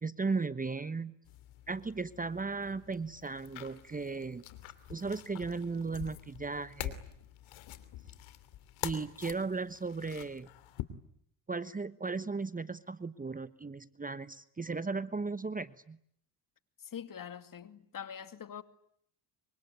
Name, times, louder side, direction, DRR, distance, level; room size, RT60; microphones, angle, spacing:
voice 1, 0.0-1.1 1.7-4.4 4.9-7.0 8.8-10.5 11.5-16.0, right 4 dB, 15° right, 1.1 m, -36 dB
sound 1, 1.2-10.8, left 13 dB, 75° left, 2.9 m, -46 dB
voice 2, 16.8-18.6, left 8 dB, 40° left, 2.3 m, -44 dB
25.5 x 24.0 x 9.5 m
supercardioid pair, 75°, 48 cm